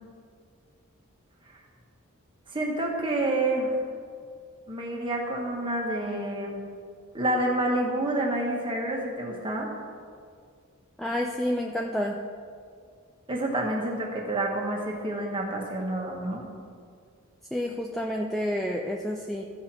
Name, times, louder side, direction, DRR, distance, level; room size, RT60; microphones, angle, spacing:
voice 1, 2.5-3.8 4.7-6.6 7.1-9.7 13.3-16.5, right 1 dB, 20° right, -1 dB, 1.5 m, -28 dB
voice 2, 11.0-12.2 17.5-19.4, left 1 dB, ahead, -1 dB, 0.4 m, -29 dB
15.0 x 5.8 x 4.4 m, 2.2 s
head